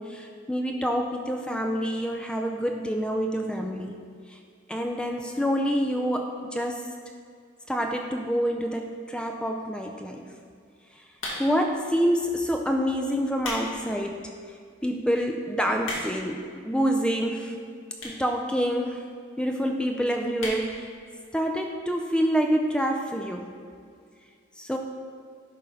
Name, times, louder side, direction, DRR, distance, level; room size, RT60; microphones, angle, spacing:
voice 1, 0.0-4.0 4.3-4.4 4.7-6.9 7.7-10.3 11.4-14.3 14.8-17.5 18.0-19.0 19.4-20.9 21.3-23.5 24.6-24.8, equal, 5° left, 3 dB, 0.4 m, -27 dB
sound 1, 11.2-11.7 12.4-12.6 13.2-13.7 14.1-14.2 14.8-14.9 15.1-15.2 15.5-16.3 17.1-17.2 18.0-18.3 18.6-18.7 18.9-19.0 19.2-19.3 19.6-19.9 20.3-20.6 21.0-21.1 21.3-21.4, left 1 dB, 75° left, 2.0 m, -34 dB
11.0 x 3.7 x 5.5 m, 2.2 s
head